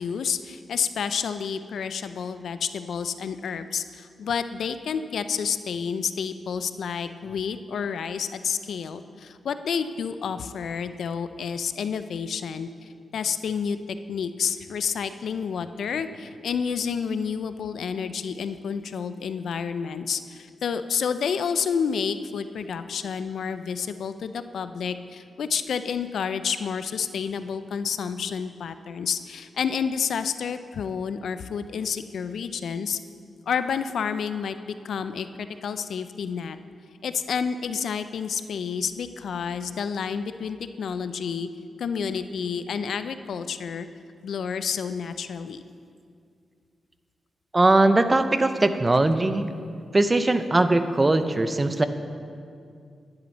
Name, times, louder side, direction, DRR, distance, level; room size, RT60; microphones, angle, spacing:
voice 1, 0.0-33.0 33.5-36.6 37.0-41.5 41.8-43.9 44.2-45.6, left 6 dB, 75° left, 11 dB, 0.4 m, -29 dB
voice 2, 47.5-49.5 49.9-51.9, right 2 dB, 25° right, 10 dB, 0.6 m, -20 dB
10.5 x 10.5 x 4.1 m, 2.3 s
cardioid pair, 75°, 0 cm